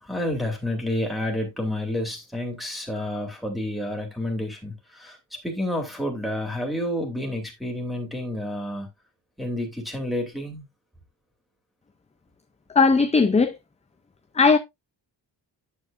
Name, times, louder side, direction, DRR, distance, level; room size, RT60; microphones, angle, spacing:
voice 1, 0.0-8.9 9.4-10.7, left 1 dB, ahead, 2.6 m, -29 dB
voice 2, 12.7-13.5 14.4-14.6, left 4 dB, 15° left, 0.4 m, -17 dB
9.2 x 8.1 x 2.5 m
wide cardioid pair, 170°, 43 cm